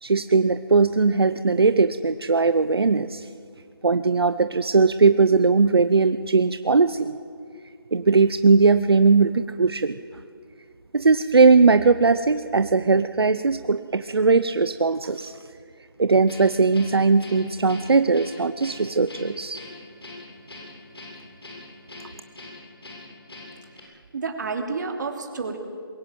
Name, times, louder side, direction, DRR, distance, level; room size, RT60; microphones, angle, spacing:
voice 1, 0.0-3.3 3.8-7.1 7.9-10.0 10.9-15.3 16.0-19.6, right 4 dB, 85° right, 11 dB, 0.8 m, -19 dB
Guitar, 16.3-23.8, left 2 dB, 85° left, 7.7 m, -42 dB
voice 2, 23.8-25.6, right 4 dB, 50° right, 4 dB, 3.0 m, -30 dB
22.0 x 16.5 x 9.1 m, 2.3 s
figure-of-eight pair, 160°, 13 cm